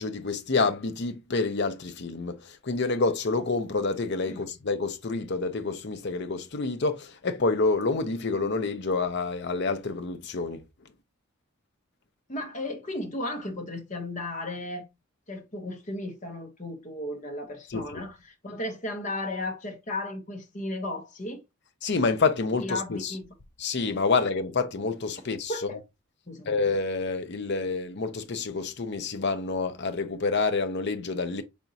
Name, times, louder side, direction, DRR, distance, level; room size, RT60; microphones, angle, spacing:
voice 1, 0.0-10.6 17.7-18.0 21.8-23.2 23.6-25.5 26.5-31.4, left 3 dB, 50° left, 0.6 m, -28 dB
voice 2, 12.3-14.9 15.3-18.2 18.4-21.4 22.6-23.3 25.5-25.7 26.3-26.6, left 1 dB, 35° left, 1.0 m, -35 dB
5.1 x 3.5 x 2.7 m
head